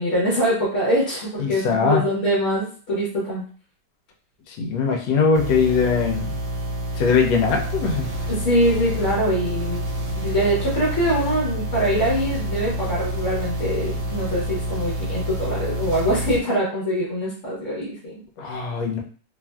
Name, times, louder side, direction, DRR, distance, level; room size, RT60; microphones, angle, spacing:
voice 1, 0.0-3.4 8.3-9.8 10.1-18.2, equal, 50° left, -7 dB, 1.1 m, -23 dB
voice 2, 1.4-2.0 4.5-6.4 6.9-8.1 18.4-19.0, left 5 dB, 75° left, 2 dB, 1.3 m, -21 dB
sound 1, 5.3-16.4, equal, 75° right, 1.3 m, -28 dB
3.1 x 2.5 x 2.2 m, 0.41 s
omnidirectional pair, 2.0 m